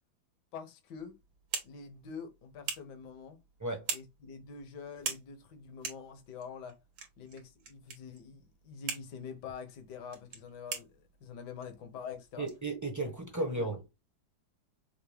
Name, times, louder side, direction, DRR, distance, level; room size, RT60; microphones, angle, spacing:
voice 1, 0.5-1.2 1.6-3.4 3.9-6.8 7.2-12.5 13.0-13.1 13.4-13.7, left 6 dB, 65° left, 1.5 m, -46 dB
sound 1, 1.0-13.4, right 6 dB, 80° right, 2.0 m, -45 dB
voice 2, 12.4-14.0, right 2 dB, 15° right, 0.8 m, -35 dB
5.9 x 2.1 x 3.4 m
omnidirectional pair, 2.1 m